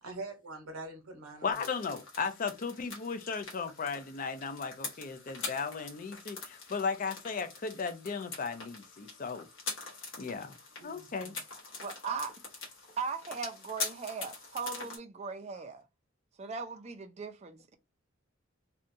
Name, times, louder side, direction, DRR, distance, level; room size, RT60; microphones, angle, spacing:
voice 1, 0.0-1.6 10.8-11.4, right 2 dB, 90° right, 0.9 m, -44 dB
voice 2, 1.4-9.5 10.2-10.5 10.8-11.3, left 5 dB, 40° left, 0.4 m, -36 dB
sound 1, 1.5-15.0, left 3 dB, 60° left, 1.1 m, -44 dB
voice 3, 11.8-12.3 13.0-15.8 16.4-17.8, right 5 dB, 30° right, 0.4 m, -38 dB
2.8 x 2.2 x 2.5 m
head